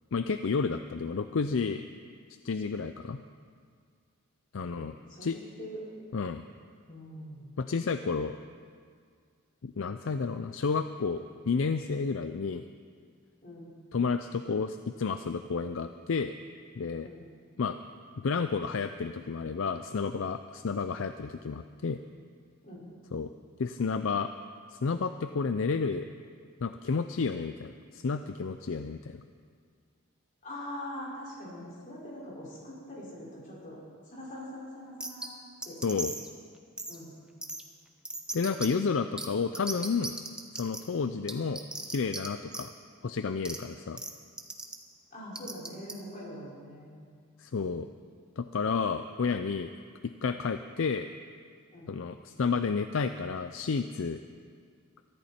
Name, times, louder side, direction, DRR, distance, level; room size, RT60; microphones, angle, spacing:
voice 1, 0.1-1.8 2.4-3.2 4.5-4.9 5.2-5.4 6.1-6.4 7.6-8.4 9.6-12.6 13.9-16.3 16.8-17.1 17.6-17.8 18.2-22.0 23.1-23.3 23.6-24.3 24.7-26.1 26.6-29.2 35.8-36.1 38.3-40.1 40.5-42.7 43.0-44.0 47.4-47.9 48.4-49.7 50.2-51.1 51.9-54.2, left 5 dB, 65° left, 9 dB, 0.5 m, -31 dB
voice 2, 4.6-5.8 6.9-7.6 13.4-13.7 17.0-17.2 22.6-22.9 30.4-33.8 34.1-35.3 35.6-35.8 36.9-37.1 45.1-46.9 51.7-52.0, left 1 dB, 35° left, -6 dB, 5.3 m, -43 dB
sound 1, 35.0-35.3 35.6-36.3 36.8-36.9 37.4-37.6 38.0-38.7 39.2-39.3 39.5-40.8 41.3-42.3 42.5-42.6 43.4-43.6 44.0-44.1 44.4-44.7 45.3-45.9, right 2 dB, 5° right, 0.9 m, -36 dB
22.5 x 14.0 x 4.4 m, 2.1 s
head